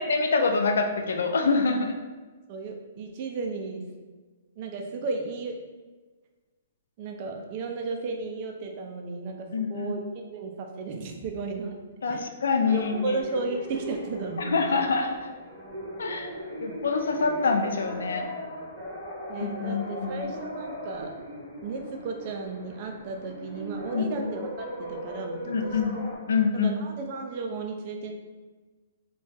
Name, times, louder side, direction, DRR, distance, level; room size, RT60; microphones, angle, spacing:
voice 1, 0.0-2.0 9.5-10.0 12.0-13.2 14.4-15.2 16.0-16.3 16.6-18.3 19.4-20.3 23.9-24.3 25.5-26.0 26.3-26.7, left 4 dB, 80° left, 4 dB, 0.4 m, -26 dB
voice 2, 2.5-3.8 4.6-5.6 7.0-11.8 12.1-12.3 12.7-14.6 19.3-21.2 21.6-25.7 26.5-28.1, right 4 dB, 30° right, 3 dB, 0.3 m, -34 dB
sound 1, 12.6-26.2, equal, 10° right, 0.8 m, -39 dB
2.5 x 2.3 x 3.8 m, 1.3 s
hypercardioid pair, 175°, 0 cm